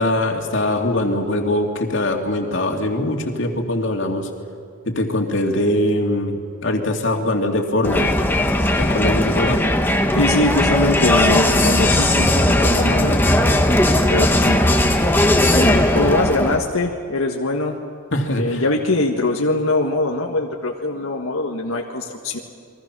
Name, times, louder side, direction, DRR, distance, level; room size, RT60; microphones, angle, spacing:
voice 1, 0.0-4.3 4.8-8.1 8.8-9.6 18.1-18.6, left 1 dB, 60° left, 2 dB, 2.6 m, -22 dB
Crowd, 7.8-16.7, left 1 dB, 10° left, 1.2 m, -17 dB
voice 2, 10.2-13.2 14.1-14.6 15.5-17.8 18.4-22.4, left 2 dB, 85° left, 1 dB, 1.6 m, -22 dB
30.0 x 22.5 x 6.2 m, 2.4 s
head